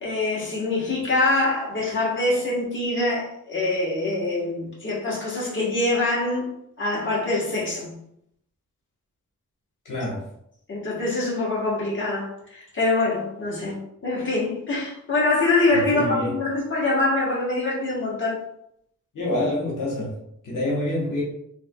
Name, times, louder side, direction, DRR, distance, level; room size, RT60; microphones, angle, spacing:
voice 1, 0.0-6.5 6.8-7.9 10.7-18.4, left 2 dB, 40° left, -6 dB, 1.2 m, -24 dB
voice 2, 9.8-10.2 15.7-16.3 19.1-20.2 20.4-21.2, left 1 dB, 75° left, -4 dB, 1.2 m, -26 dB
3.4 x 3.3 x 2.3 m, 0.74 s
wide cardioid pair, 120°, 32 cm